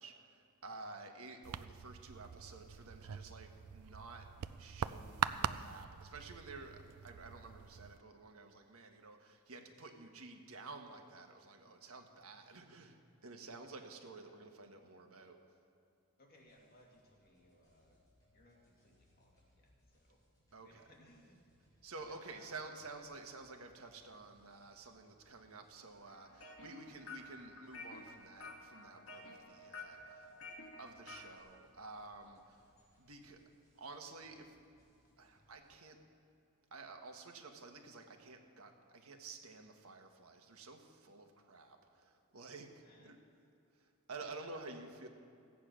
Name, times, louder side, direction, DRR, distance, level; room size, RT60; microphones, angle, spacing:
voice 1, 0.0-4.3 4.6-15.4 20.5-20.8 21.8-30.3 30.8-32.6 33.0-33.4 33.7-34.5 35.2-36.0 36.7-43.2 43.7-45.1, right 3 dB, 70° right, 4 dB, 1.4 m, -51 dB
sound 1, 1.4-8.0, right 8 dB, 90° right, 0.4 m, -43 dB
voice 2, 14.2-14.5 16.2-18.0 18.3-20.2 20.6-21.4 21.7-22.6 29.3-30.0 42.8-43.2, left 1 dB, 40° left, -1 dB, 2.3 m, -66 dB
sound 2, 16.3-35.7, equal, 15° left, 3.7 m, -73 dB
sound 3, 26.1-31.4, left 3 dB, 60° left, 1.7 m, -52 dB
16.0 x 8.5 x 6.2 m, 2.5 s
head